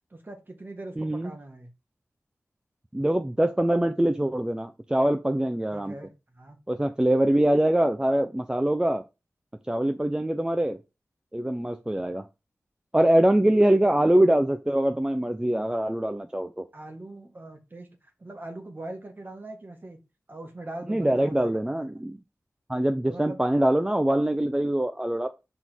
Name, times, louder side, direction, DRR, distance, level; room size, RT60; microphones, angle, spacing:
voice 1, 0.1-1.7 5.7-6.6 13.4-13.5 16.7-20.0 20.3-21.6 23.1-23.4, right 2 dB, 35° right, 1.7 m, -41 dB
voice 2, 1.0-1.3 2.9-6.0 6.7-9.0 9.7-10.8 11.3-12.2 12.9-16.7 20.9-22.2 22.7-25.3, right 1 dB, 15° right, 0.6 m, -23 dB
6.1 x 3.8 x 4.5 m
wide cardioid pair, 65°, 6 cm